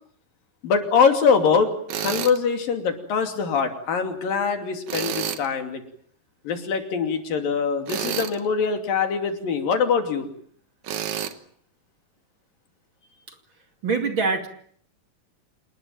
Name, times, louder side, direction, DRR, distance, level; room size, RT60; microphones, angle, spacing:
voice 1, 0.6-1.7 2.0-5.8 6.4-10.3, left 6 dB, 90° left, 6 dB, 4.6 m, -23 dB
Tools, 1.9-2.4 4.9-5.5 7.9-8.4 10.8-11.3, right 10 dB, 65° right, 2.6 m, -29 dB
voice 2, 13.8-14.5, right 4 dB, 40° right, 6 dB, 2.7 m, -23 dB
27.5 x 20.0 x 9.0 m, 0.63 s
omnidirectional pair, 3.9 m